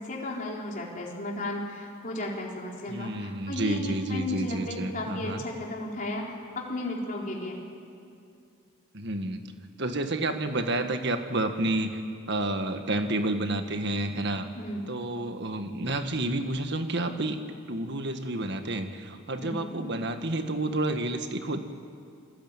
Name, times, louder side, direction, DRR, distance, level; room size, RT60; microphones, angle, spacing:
voice 1, 0.0-6.3 6.6-7.6 14.5-14.8 19.4-19.9, left 1 dB, 35° left, -2 dB, 4.3 m, -34 dB
voice 2, 2.9-5.4 8.9-9.4 9.8-12.0 12.3-14.5 14.9-17.4 17.7-21.6, right 2 dB, 50° right, 7 dB, 1.7 m, -30 dB
29.0 x 20.5 x 9.2 m, 2.4 s
head